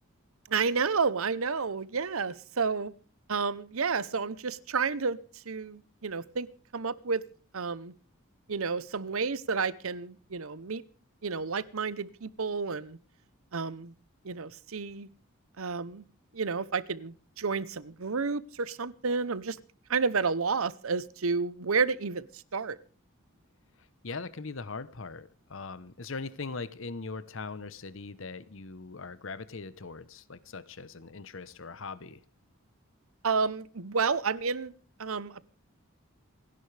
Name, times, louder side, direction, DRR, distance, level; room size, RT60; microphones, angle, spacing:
voice 1, 0.5-2.9 3.3-5.2 5.5-6.5 6.7-7.2 7.5-7.9 8.5-10.8 11.2-13.0 13.5-13.9 14.2-15.1 15.6-16.0 16.3-19.6 19.9-22.3 22.5-22.8 33.2-34.7 35.0-35.4, right 5 dB, 75° right, 0.8 m, -30 dB
voice 2, 24.0-32.2, left 4 dB, 65° left, 0.9 m, -40 dB
28.0 x 11.0 x 3.3 m
head